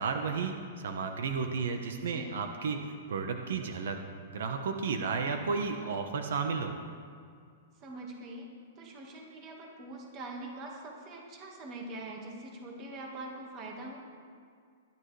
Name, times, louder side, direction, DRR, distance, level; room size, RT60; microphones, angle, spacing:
voice 1, 0.0-2.8 3.1-4.0 4.3-6.7, right 5 dB, 65° right, 5 dB, 1.2 m, -33 dB
voice 2, 1.9-2.3 7.8-8.5 8.8-14.0, right 2 dB, 20° right, -1 dB, 1.8 m, -43 dB
20.5 x 12.5 x 3.4 m, 2.2 s
hypercardioid pair, 180°, 0 cm